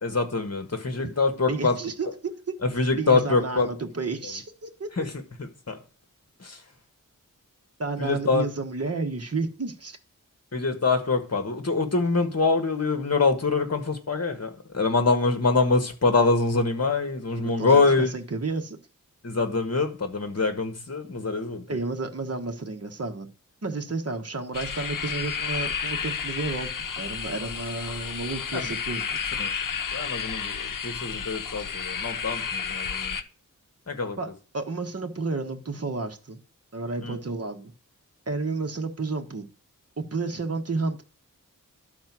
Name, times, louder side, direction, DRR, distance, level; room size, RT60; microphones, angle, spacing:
voice 1, 0.0-1.8 2.0-2.1 2.6-3.7 4.2-4.3 4.9-5.8 6.4-6.6 8.0-8.5 10.5-18.1 19.2-21.8 28.5-28.7 29.4-29.5 29.9-33.2 33.9-34.2 37.0-37.2, left 3 dB, 50° left, 1.7 m, -25 dB
voice 2, 1.5-2.6 2.9-5.1 7.8-10.0 17.4-18.8 21.7-23.3 23.6-26.7 27.0-29.2 34.2-34.3 34.5-36.4 36.7-37.7 38.3-39.5 40.0-41.0, right 3 dB, 45° right, 1.3 m, -31 dB
sound 1, 24.5-33.2, left 6 dB, 70° left, 0.7 m, -31 dB
12.0 x 4.3 x 6.1 m
wide cardioid pair, 75°, 33 cm